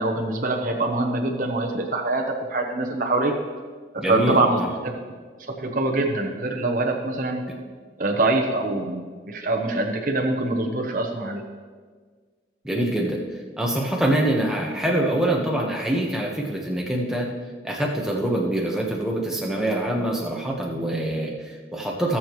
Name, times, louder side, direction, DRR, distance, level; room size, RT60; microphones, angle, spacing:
voice 1, 0.0-2.2 2.5-3.3 4.1-4.9 5.5-7.4 8.0-11.4, right 2 dB, 45° right, 1 dB, 0.9 m, -24 dB
voice 2, 4.0-4.7 12.6-13.2 13.6-17.3 17.6-22.2, right 1 dB, 5° right, -2 dB, 1.3 m, -25 dB
18.5 x 7.2 x 3.1 m, 1.6 s
head